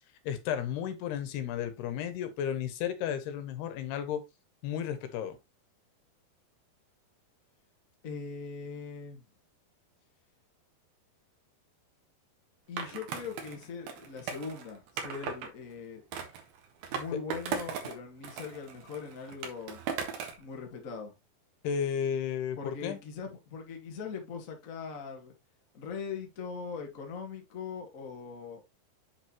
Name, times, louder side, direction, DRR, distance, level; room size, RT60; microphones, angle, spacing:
voice 1, 0.2-4.2 4.6-5.4 17.1-17.2 21.6-23.0, left 8 dB, 75° left, 3.1 m, -33 dB
voice 2, 8.0-9.2 12.7-16.0 16.9-19.8 20.4-21.1 22.6-25.3 25.7-28.6, left 5 dB, 50° left, 0.9 m, -41 dB
Skateboard, 12.8-15.5 16.1-18.0 18.2-20.4, right 6 dB, 65° right, 3.2 m, -38 dB
8.2 x 6.1 x 3.0 m
omnidirectional pair, 4.8 m